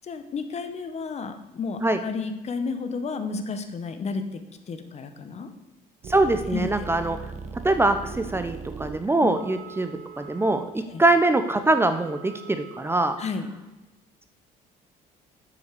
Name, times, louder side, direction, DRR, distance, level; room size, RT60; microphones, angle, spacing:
voice 1, 0.0-4.2 4.7-5.5 6.5-6.9 9.2-9.3 10.9-11.0 13.2-13.5, left 4 dB, 40° left, 8 dB, 1.0 m, -32 dB
sound 1, 6.0-11.2, right 5 dB, 45° right, 0.9 m, -39 dB
voice 2, 6.1-7.2 7.6-10.6 11.0-13.2, right 2 dB, 15° right, 9 dB, 0.6 m, -23 dB
Wind instrument woodwind instrument, 9.3-13.4, right 5 dB, 65° right, 3.3 m, -47 dB
8.3 x 5.7 x 6.7 m, 1.1 s
cardioid pair, 110°, 17 cm